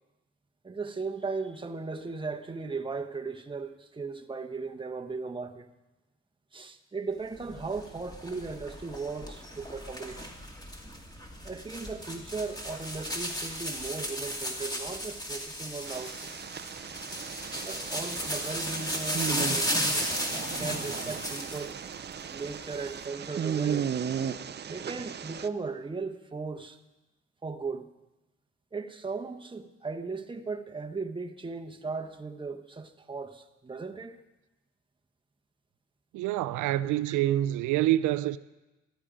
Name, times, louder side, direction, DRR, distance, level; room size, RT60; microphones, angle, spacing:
voice 1, 0.6-5.7 6.5-10.3 11.4-16.3 17.6-20.1 20.6-21.8 22.3-23.9 24.7-26.8 27.4-27.8 28.7-34.2 37.1-37.2, right 4 dB, 15° right, 1.0 m, -37 dB
sound 1, 7.4-21.7 22.1-23.0, equal, 15° left, 2.3 m, -35 dB
sound 2, 15.8-25.5, right 8 dB, 35° right, 0.5 m, -36 dB
voice 2, 36.1-38.4, right 14 dB, 90° right, 0.5 m, -26 dB
12.5 x 12.5 x 5.0 m
cardioid pair, 90°, 30 cm